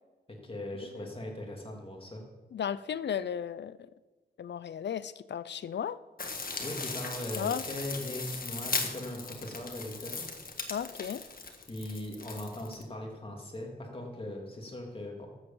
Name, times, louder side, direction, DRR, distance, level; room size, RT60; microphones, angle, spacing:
voice 1, 0.3-2.2 6.6-10.3 11.7-15.3, left 1 dB, 30° left, 0 dB, 2.8 m, -39 dB
voice 2, 2.5-3.9 4.4-6.0 7.4-7.6 10.7-11.2, left 8 dB, 80° left, 17 dB, 0.5 m, -35 dB
sound 1, 6.2-12.8, left 4 dB, 55° left, 1.6 m, -38 dB
13.0 x 8.0 x 7.1 m, 1.3 s
wide cardioid pair, 95°, 18 cm